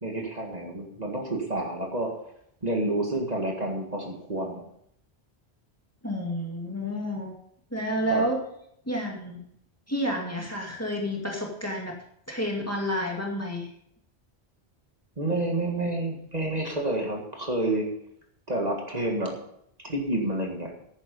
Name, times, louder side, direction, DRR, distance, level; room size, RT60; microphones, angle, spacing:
voice 1, 0.0-2.2 2.6-4.6 8.1-8.2 15.2-17.9 18.5-19.3 19.8-20.7, right 1 dB, 40° right, 1 dB, 2.0 m, -29 dB
voice 2, 6.0-7.3 7.7-8.4 8.9-9.4 9.9-12.0 12.3-13.7, equal, 15° left, 0 dB, 2.1 m, -30 dB
11.0 x 10.0 x 5.3 m, 0.71 s
omnidirectional pair, 1.1 m